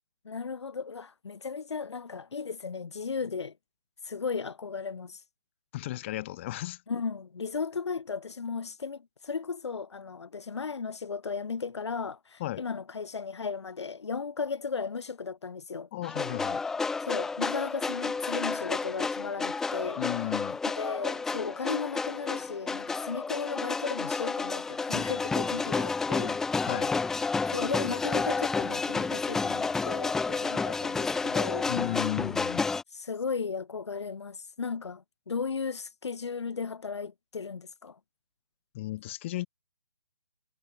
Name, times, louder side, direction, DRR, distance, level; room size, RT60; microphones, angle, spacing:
voice 1, 0.2-3.5 4.0-5.2 6.9-15.9 17.0-20.0 20.6-26.3 27.5-31.7 32.9-38.0, left 5 dB, 70° left, 3.4 m, -35 dB
voice 2, 5.7-6.8 12.4-12.6 15.9-16.6 20.0-20.6 26.1-26.4 26.6-26.9 31.7-32.7 38.7-39.5, left 16 dB, 25° left, 4.7 m, -34 dB
sound 1, 16.0-32.8, left 4 dB, 5° left, 0.7 m, -31 dB
hypercardioid pair, 165°, 15 cm